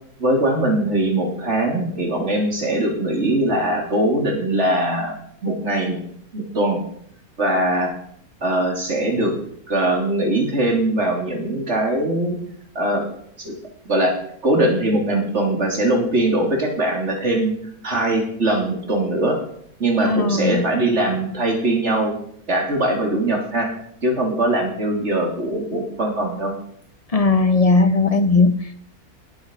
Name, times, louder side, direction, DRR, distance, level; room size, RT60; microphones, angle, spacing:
voice 1, 0.2-5.1 5.4-6.0 6.3-6.8 7.4-7.9 8.4-9.3 9.7-12.3 12.7-13.0 13.4-13.6 13.9-14.2 14.4-17.5 17.8-19.4 19.8-22.1 22.5-23.7 24.0-26.5, right 1 dB, 50° right, 1 dB, 3.4 m, -21 dB
voice 2, 20.0-20.6 27.1-28.5, left 3 dB, 30° left, 10 dB, 0.8 m, -17 dB
18.5 x 7.9 x 5.4 m, 0.65 s
omnidirectional pair, 1.5 m